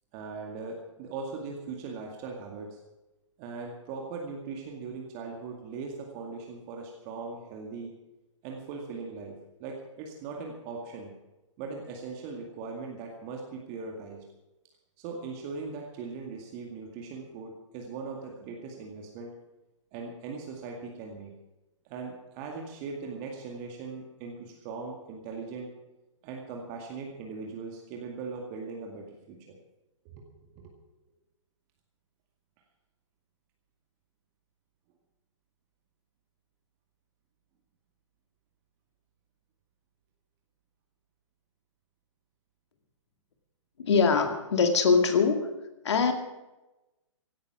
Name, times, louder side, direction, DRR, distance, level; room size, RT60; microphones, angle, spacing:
voice 1, 0.1-2.8 3.4-7.9 8.4-11.1 11.6-14.2 15.0-19.3 19.9-21.3 21.8-25.7 26.2-29.6 30.1-30.7, right 4 dB, 30° right, 1 dB, 2.1 m, -40 dB
voice 2, 43.8-45.5 45.8-46.1, left 5 dB, 60° left, 6 dB, 2.3 m, -23 dB
16.5 x 12.0 x 5.9 m, 1.0 s
figure-of-eight pair, 125°, 17 cm